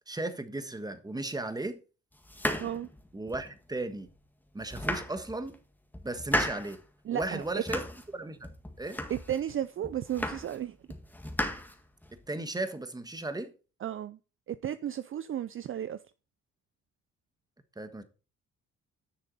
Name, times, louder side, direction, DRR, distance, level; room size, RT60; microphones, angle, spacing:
voice 1, 0.1-1.8 3.1-4.1 4.5-5.6 6.0-6.8 7.1-7.8 8.1-8.5 8.8-9.0 12.1-13.5 17.8-18.0, right 2 dB, 15° right, 1.4 m, -35 dB
sound 1, 2.2-3.6 4.1-4.2 4.6-5.5 5.9-6.8 7.2-8.1 8.4-9.4 9.8-10.6 10.9-12.2, left 1 dB, 5° left, 1.7 m, -35 dB
voice 2, 7.1-7.6 9.1-10.8 13.8-14.2 14.5-16.0, right 10 dB, 45° right, 0.5 m, -34 dB
10.5 x 6.5 x 4.1 m
cardioid pair, 90°, 30 cm